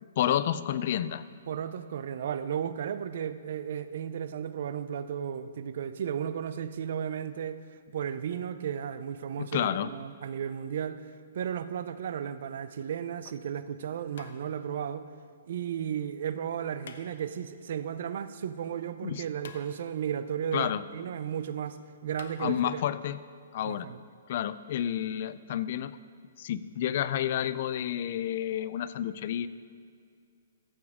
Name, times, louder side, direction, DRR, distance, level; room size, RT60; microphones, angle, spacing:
voice 1, 0.2-1.2 9.4-9.9 19.0-19.2 20.5-20.8 22.4-23.2 23.5-23.9 24.3-26.0 26.4-29.5, left 11 dB, 40° left, 15 dB, 0.3 m, -30 dB
voice 2, 1.5-11.1 11.3-15.1 15.5-21.8 22.0-22.8 23.6-24.0, right 8 dB, 50° right, 12 dB, 0.4 m, -34 dB
sound 1, 12.8-12.9 14.1-14.9 16.8-17.6 19.4-20.2 22.2-22.4, left 6 dB, 60° left, 0.7 m, -49 dB
14.0 x 7.1 x 3.6 m, 2.3 s
hypercardioid pair, 165°, 0 cm